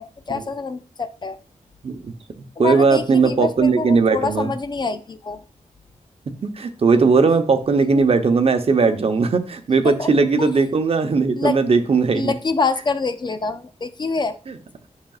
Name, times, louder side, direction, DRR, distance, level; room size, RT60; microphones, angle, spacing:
voice 1, 0.0-1.4 2.6-5.4 8.0-8.1 9.8-10.1 10.4-10.6 11.4-11.6 12.1-14.4, left 4 dB, 35° left, 11 dB, 0.5 m, -26 dB
voice 2, 2.6-4.5 6.4-12.3 14.5-14.6, right 4 dB, 50° right, 7 dB, 0.9 m, -18 dB
10.5 x 6.5 x 2.4 m, 0.39 s
wide cardioid pair, 165°, 13 cm